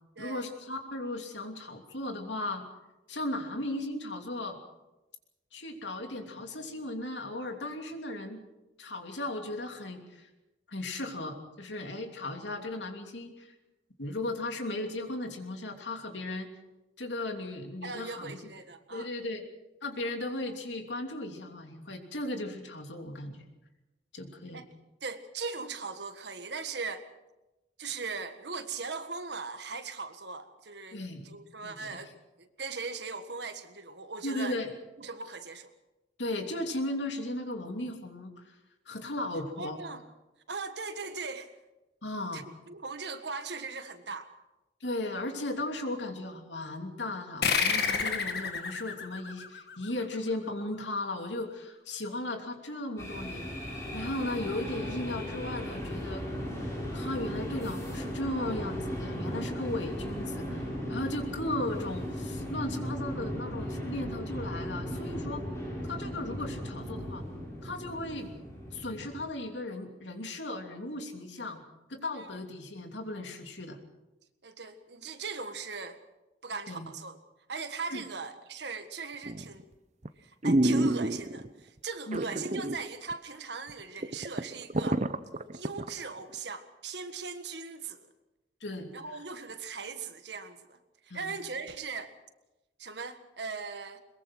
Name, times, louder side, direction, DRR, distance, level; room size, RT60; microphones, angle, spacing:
voice 1, 0.2-2.6 3.1-4.6 5.5-8.4 8.8-10.3 10.7-13.5 14.0-16.5 17.0-18.4 18.9-19.4 19.8-23.5 24.1-24.6 30.9-31.4 31.6-32.0 34.2-34.7 36.2-38.3 38.9-39.8 42.0-42.4 44.8-53.5 53.9-56.2 56.9-60.6 60.9-65.4 65.9-67.2 67.6-68.3 68.7-71.6 71.9-73.8 76.7-76.9 77.9-78.0 82.1-82.4 88.6-88.9 91.1-91.3, left 1 dB, 85° left, 4 dB, 3.0 m, -36 dB
voice 2, 17.8-19.1 24.5-24.6 25.0-27.1 27.8-32.1 32.4-34.6 35.0-35.7 39.6-40.0 40.5-41.5 42.3-44.3 72.1-72.3 74.4-76.0 76.4-77.2 77.5-79.6 80.2-85.0 85.5-88.1 88.9-90.8 91.1-92.1 92.8-94.0, right 4 dB, 70° right, 9 dB, 1.7 m, -39 dB
sound 1, 47.4-50.5, left 5 dB, 60° left, 1.9 m, -30 dB
sound 2, 53.0-69.2, equal, 15° left, 7.8 m, -37 dB
sound 3, 79.3-79.6 80.0-80.1 80.4-81.5 82.1-82.8 83.1-83.2 83.7-83.8 84.0-85.9 86.3-86.4, right 1 dB, 40° right, 0.8 m, -28 dB
22.0 x 22.0 x 6.2 m, 1.0 s
head